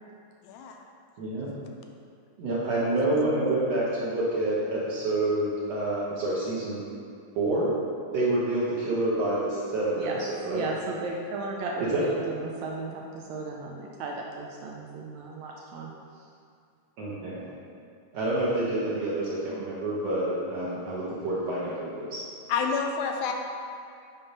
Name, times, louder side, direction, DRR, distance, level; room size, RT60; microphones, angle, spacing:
voice 1, 0.4-0.8 22.5-23.3, left 5 dB, 80° left, 2 dB, 1.9 m, -28 dB
voice 2, 1.2-1.5 2.4-6.8 7.4-7.7 8.1-10.7 11.8-12.0 17.0-17.5 18.1-22.2, right 2 dB, 60° right, -8 dB, 2.0 m, -28 dB
voice 3, 10.5-15.9, right 3 dB, 80° right, -1 dB, 1.7 m, -35 dB
8.7 x 3.7 x 5.3 m, 2.3 s
omnidirectional pair, 3.8 m